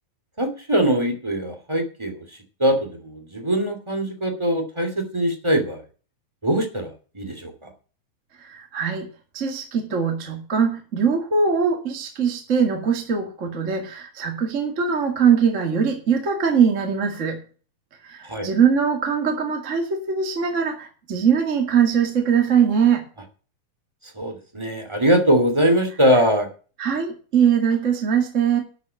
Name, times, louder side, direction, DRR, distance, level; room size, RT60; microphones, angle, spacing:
voice 1, 0.4-2.2 2.6-5.8 6.4-7.7 18.2-18.5 24.1-26.5, equal, 10° right, 5 dB, 2.1 m, -22 dB
voice 2, 8.4-9.1 9.3-17.4 18.0-23.1 26.8-28.6, right 7 dB, 25° right, 2 dB, 1.8 m, -21 dB
12.0 x 6.7 x 8.2 m, 0.38 s
omnidirectional pair, 4.0 m